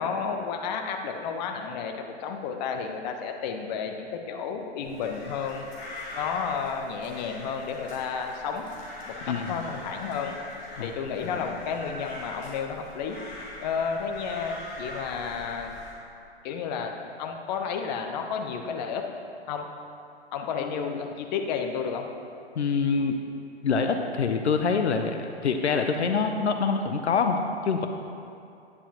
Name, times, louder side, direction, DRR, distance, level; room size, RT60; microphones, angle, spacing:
voice 1, 0.0-5.7 6.1-8.7 9.1-10.4 10.8-13.2 13.6-15.8 16.4-19.1 19.5-19.7 20.3-22.1, left 6 dB, 40° left, 4 dB, 0.9 m, -32 dB
sound 1, 4.8-15.9, left 1 dB, 20° left, 2.2 m, -42 dB
voice 2, 9.3-9.6 10.7-10.9 11.3-11.5 20.6-21.0 22.6-23.2 23.6-27.9, left 5 dB, 80° left, 6 dB, 0.7 m, -26 dB
10.0 x 9.8 x 3.0 m, 2.5 s
figure-of-eight pair, 115°, 33 cm